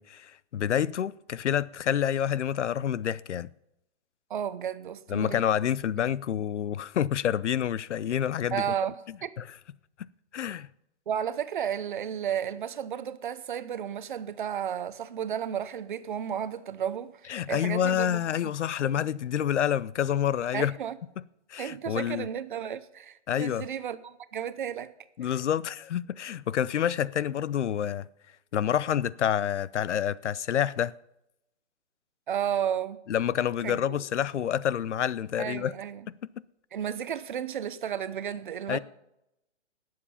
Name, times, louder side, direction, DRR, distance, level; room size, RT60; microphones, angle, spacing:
voice 1, 0.0-3.5 5.1-8.6 9.4-9.5 10.3-10.7 17.3-20.7 21.5-22.3 23.3-23.7 25.2-28.1 28.5-30.9 33.1-35.7 38.7-38.8, left 9 dB, 75° left, 0.6 m, -28 dB
voice 2, 4.3-5.4 6.0-6.1 8.5-9.0 9.2-9.3 11.1-18.2 18.9-19.1 20.5-21.0 21.6-24.9 25.2-25.3 32.3-33.0 33.6-34.0 35.4-36.1 36.7-38.8, right 9 dB, 45° right, 0.8 m, -33 dB
18.5 x 7.6 x 5.7 m
hypercardioid pair, 165°, 36 cm